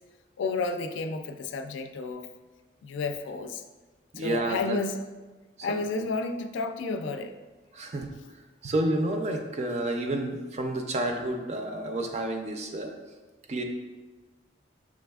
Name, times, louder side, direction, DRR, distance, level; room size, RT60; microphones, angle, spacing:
voice 1, 0.4-2.3 2.8-3.6 4.2-5.1 5.6-7.3, left 3 dB, 85° left, 7 dB, 0.3 m, -31 dB
voice 2, 4.1-4.8 5.7-6.0 7.7-8.1 8.6-12.9 13.5-13.6, right 1 dB, 35° right, 4 dB, 0.4 m, -30 dB
6.2 x 3.3 x 2.3 m, 1.2 s
head